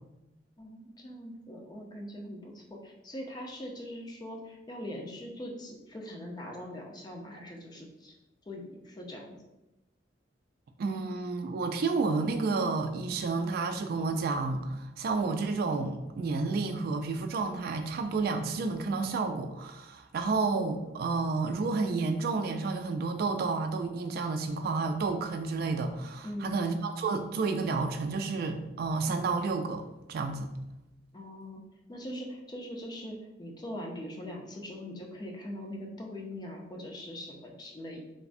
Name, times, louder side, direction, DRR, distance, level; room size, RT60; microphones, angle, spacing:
voice 1, 0.6-8.1 8.5-9.4 26.2-26.6 31.1-31.6 31.9-38.2, left 1 dB, 20° left, 0 dB, 0.4 m, -42 dB
voice 2, 10.8-29.8 30.1-30.5, right 4 dB, 55° right, 6 dB, 0.3 m, -30 dB
3.2 x 2.0 x 2.5 m, 0.97 s
head